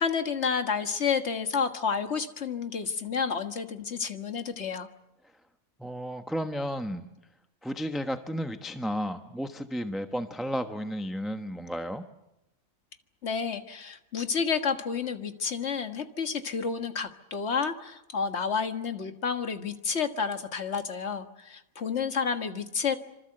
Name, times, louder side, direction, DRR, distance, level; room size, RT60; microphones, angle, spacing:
voice 1, 0.0-4.9 13.2-23.0, left 6 dB, 55° left, 7 dB, 1.8 m, -30 dB
voice 2, 5.8-7.1 7.6-12.0, equal, ahead, 6 dB, 1.0 m, -33 dB
26.0 x 25.0 x 7.9 m, 0.90 s
omnidirectional pair, 1.4 m